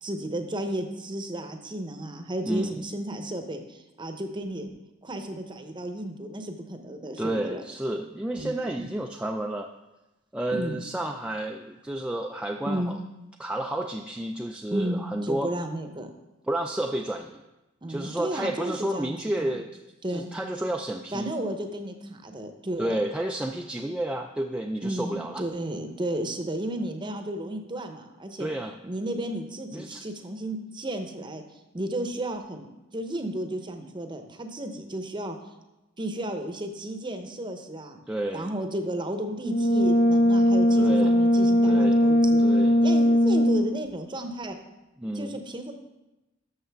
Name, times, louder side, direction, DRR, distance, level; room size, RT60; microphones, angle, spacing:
voice 1, 0.0-4.7 5.0-7.6 8.4-8.9 10.5-10.8 12.7-12.9 14.7-16.1 17.8-19.6 20.0-20.3 21.1-23.0 24.8-28.5 28.8-32.7 32.9-35.5 36.0-38.0 38.3-42.4 42.8-44.6 45.1-45.7, right 1 dB, 25° right, 6 dB, 0.7 m, -33 dB
voice 2, 2.4-2.7 7.2-9.7 10.3-13.0 13.4-15.5 16.5-17.4 17.9-19.7 20.1-21.3 22.8-25.4 28.4-28.7 29.7-30.1 38.1-38.5 40.8-41.1 41.6-42.0 42.4-42.8 45.0-45.4, right 1 dB, 5° right, 2 dB, 0.3 m, -31 dB
Brass instrument, 39.4-43.8, equal, 50° left, 0.6 m, -20 dB
12.5 x 6.4 x 3.5 m, 1.0 s
head